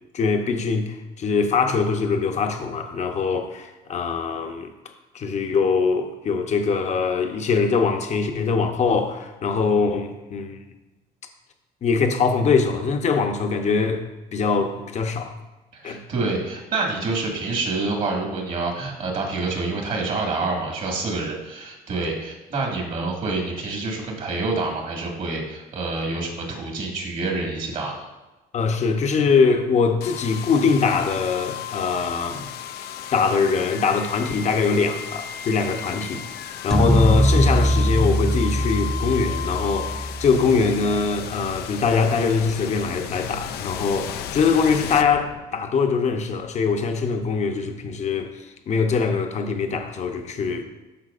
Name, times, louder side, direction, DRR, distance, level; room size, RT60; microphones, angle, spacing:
voice 1, 0.1-4.7 5.1-10.6 11.8-14.1 14.3-15.3 15.8-16.0 22.1-22.2 28.5-32.5 33.1-36.2 36.6-50.6, left 5 dB, 45° left, 0.8 m, -22 dB
voice 2, 15.7-27.9 35.8-36.1, right 3 dB, 50° right, 1.9 m, -27 dB
sound 1, 30.0-45.8, left 9 dB, 70° left, 0.5 m, -35 dB
sound 2, 36.7-41.0, equal, ahead, 0.3 m, -22 dB
12.5 x 4.6 x 2.5 m
cardioid pair, 110°, 17 cm